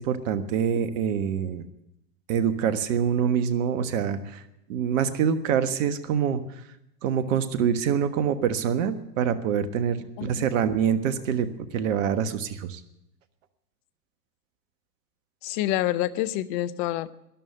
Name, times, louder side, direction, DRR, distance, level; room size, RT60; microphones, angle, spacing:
voice 1, 0.0-1.6 2.3-4.4 4.7-6.4 7.0-11.5 11.7-12.8, right 8 dB, 50° right, 12 dB, 1.5 m, -25 dB
voice 2, 15.4-17.1, left 14 dB, 30° left, 15 dB, 0.6 m, -27 dB
13.0 x 11.0 x 8.7 m, 0.83 s
hypercardioid pair, 110°, 50 cm